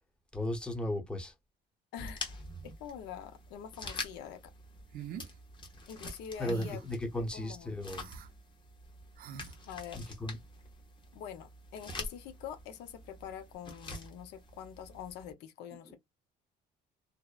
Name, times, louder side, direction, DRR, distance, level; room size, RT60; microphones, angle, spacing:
voice 1, 0.3-1.3 6.4-8.1 9.9-10.4 15.8-16.0, left 1 dB, 5° left, 0.7 m, -35 dB
sound 1, 2.0-15.3, left 2 dB, 30° left, 0.9 m, -46 dB
voice 2, 2.6-4.5 5.0-5.1 5.9-6.8 7.1-7.8 9.7-10.0 11.1-16.0, left 9 dB, 85° left, 0.6 m, -45 dB
sound 2, 4.9-5.3 6.4-6.9 7.9-8.3 9.2-9.5, right 8 dB, 60° right, 0.5 m, -44 dB
2.6 x 2.0 x 2.2 m
cardioid pair, 110°, 17 cm